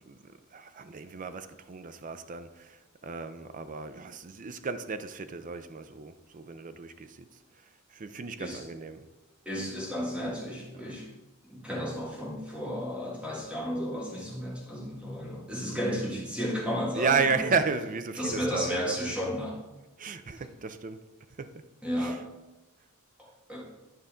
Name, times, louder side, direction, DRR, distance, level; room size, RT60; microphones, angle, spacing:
voice 1, 0.5-2.7 3.0-7.3 7.9-9.1 16.9-19.0 20.0-21.0 21.4-21.5 22.0-22.1, right 5 dB, 35° right, 0.5 m, -33 dB
voice 2, 9.5-11.1 11.4-17.5 18.2-19.6 20.4-20.5 21.8-22.3 23.2-23.7, equal, 5° right, 1.8 m, -33 dB
10.5 x 5.5 x 3.7 m
head